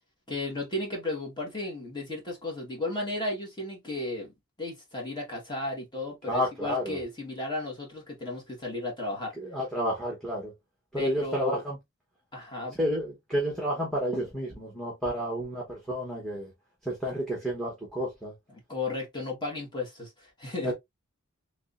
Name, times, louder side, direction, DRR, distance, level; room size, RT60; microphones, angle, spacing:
voice 1, 0.3-4.3 4.6-9.3 10.9-11.6 12.3-12.8 18.7-20.7, left 2 dB, 20° left, 1.4 m, -34 dB
voice 2, 6.3-7.0 9.4-10.5 10.9-11.8 12.8-16.5 16.8-18.3 20.6-20.7, equal, ahead, 1.0 m, -30 dB
3.5 x 3.2 x 2.4 m
head